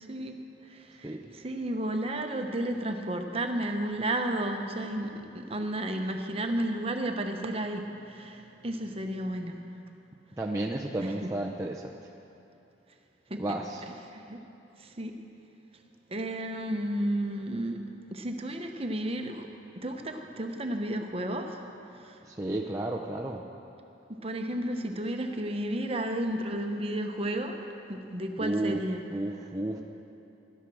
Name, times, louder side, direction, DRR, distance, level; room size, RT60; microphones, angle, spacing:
voice 1, 0.0-9.6 11.0-11.1 13.3-13.6 14.1-14.4 14.8-15.2 16.1-17.8 18.1-19.5 19.8-21.6 21.9-22.2 24.1-27.6 27.9-29.0, right 1 dB, 35° right, 4 dB, 1.0 m, -32 dB
voice 2, 10.4-12.0 13.4-13.8 22.2-23.4 28.4-28.8 29.1-29.8, right 1 dB, 15° right, -2 dB, 0.5 m, -32 dB
13.0 x 12.0 x 6.2 m, 2.8 s
head